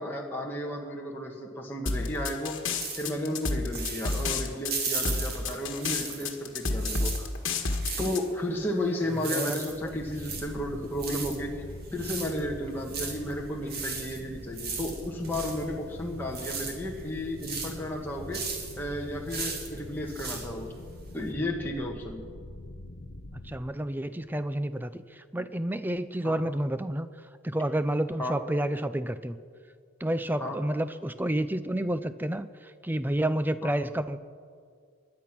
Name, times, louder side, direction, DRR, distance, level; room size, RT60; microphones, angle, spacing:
voice 1, 0.0-2.6 3.0-7.3 8.0-11.5 11.9-18.4 18.8-20.7 21.1-22.2 26.2-26.5 28.2-28.4 30.4-30.6 33.6-33.7, left 1 dB, 10° left, -2 dB, 1.3 m, -33 dB
sound 1, 1.9-8.2, left 3 dB, 60° left, 1.5 m, -30 dB
sound 2, 2.8-6.4 6.7-21.3, right 5 dB, 45° right, 2.1 m, -37 dB
voice 2, 9.3-9.6 23.4-27.1 27.4-29.3 30.0-34.2, right 1 dB, 10° right, 13 dB, 0.4 m, -30 dB
sound 3, 9.6-23.6, left 1 dB, 80° left, 1.1 m, -43 dB
21.0 x 10.5 x 6.0 m, 2.2 s
head